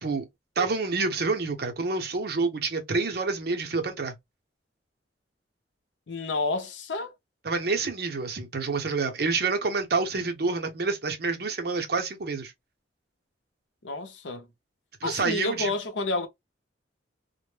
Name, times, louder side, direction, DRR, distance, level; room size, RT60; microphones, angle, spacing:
voice 1, 0.6-4.1 7.4-12.5 15.0-15.7, right 4 dB, 60° right, 0.6 m, -28 dB
voice 2, 6.1-7.1 13.8-14.5 15.0-16.3, left 2 dB, 90° left, 0.6 m, -30 dB
2.1 x 2.0 x 3.1 m
head